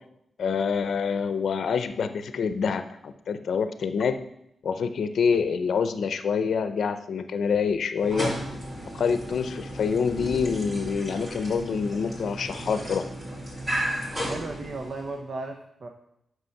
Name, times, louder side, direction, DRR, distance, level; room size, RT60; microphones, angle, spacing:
voice 1, 0.4-4.2 4.6-8.3 8.9-13.1, left 6 dB, 70° left, 10 dB, 0.6 m, -26 dB
sound 1, 8.0-15.2, right 1 dB, 20° right, 2.3 m, -34 dB
voice 2, 14.3-15.9, right 3 dB, 50° right, 4 dB, 0.8 m, -35 dB
8.1 x 6.1 x 5.7 m, 0.79 s
wide cardioid pair, 115°, 0 cm